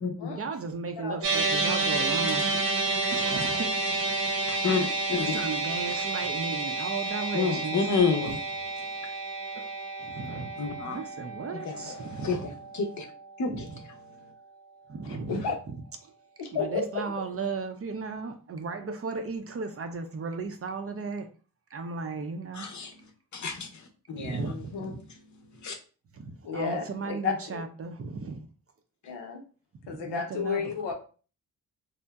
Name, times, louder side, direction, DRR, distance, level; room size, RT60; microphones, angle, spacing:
voice 1, 0.3-2.5 3.1-3.7 5.1-8.4 9.5-9.6 10.0-12.5 13.5-13.8 14.9-15.8 16.0-16.1 16.5-21.3 21.7-22.7 24.2-25.0 26.1-28.4 29.8-30.9, right 4 dB, 35° right, 0.5 m, -36 dB
sound 1, 1.2-13.7, right 3 dB, 85° right, 0.7 m, -30 dB
voice 2, 4.5-5.4 7.3-8.4 10.6-11.0 11.6-11.9 12.2-13.0 13.4-13.7 22.5-22.9 23.3-23.7 24.1-24.4 25.6-25.8, left 5 dB, 45° left, 0.7 m, -29 dB
voice 3, 16.4-16.9 24.4-24.9 26.4-27.3 29.1-29.4 29.9-30.9, left 5 dB, 80° left, 0.7 m, -32 dB
2.7 x 2.1 x 2.3 m
supercardioid pair, 50°, 41 cm